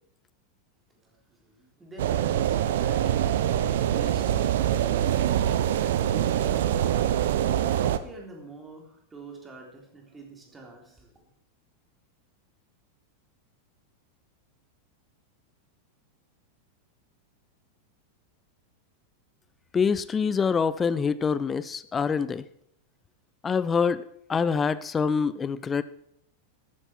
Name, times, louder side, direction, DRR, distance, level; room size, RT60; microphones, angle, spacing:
voice 1, 0.9-5.3 6.0-11.2, right 2 dB, 15° right, 1 dB, 3.3 m, -46 dB
sound 1, 2.0-8.0, right 11 dB, 55° right, 0.7 m, -24 dB
voice 2, 19.7-22.4 23.4-24.0 24.3-25.8, left 6 dB, 20° left, 16 dB, 0.5 m, -25 dB
13.5 x 9.9 x 4.5 m, 0.71 s
figure-of-eight pair, 90°, 0 cm